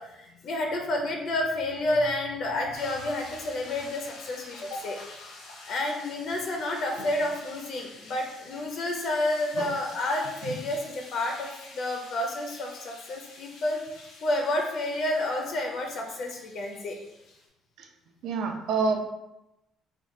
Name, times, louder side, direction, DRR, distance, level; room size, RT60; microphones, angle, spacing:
voice 1, 0.0-5.0 5.7-13.8 14.2-17.0, left 1 dB, 50° left, 2 dB, 0.5 m, -30 dB
sound 1, 2.7-17.5, left 2 dB, 80° left, 0.9 m, -48 dB
voice 2, 18.2-19.0, right 4 dB, 65° right, 3 dB, 0.5 m, -27 dB
3.6 x 2.2 x 3.6 m, 0.90 s
cardioid pair, 175°, 0 cm